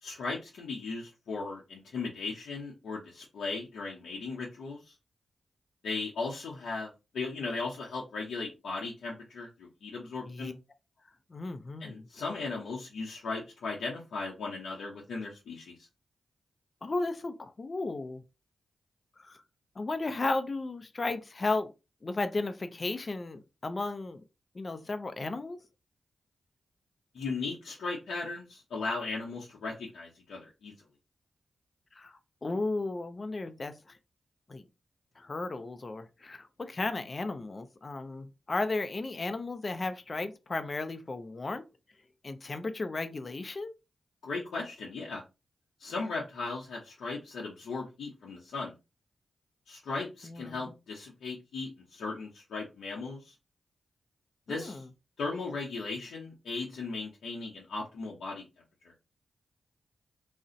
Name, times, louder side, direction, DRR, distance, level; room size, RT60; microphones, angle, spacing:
voice 1, 0.0-4.9 5.8-10.5 11.8-15.9 27.1-30.7 44.2-45.2 45.8-48.7 49.7-53.3 54.5-54.8 55.2-58.4, left 3 dB, 80° left, 0.7 m, -37 dB
voice 2, 11.3-12.1 16.8-18.2 19.2-19.4 19.8-21.7 22.0-24.2 24.5-25.6 31.9-34.0 34.5-34.6 35.2-41.6 42.2-43.7 50.2-50.6 54.5-54.8, left 3 dB, 45° left, 0.4 m, -34 dB
2.5 x 2.1 x 3.8 m
supercardioid pair, 40°, 0 cm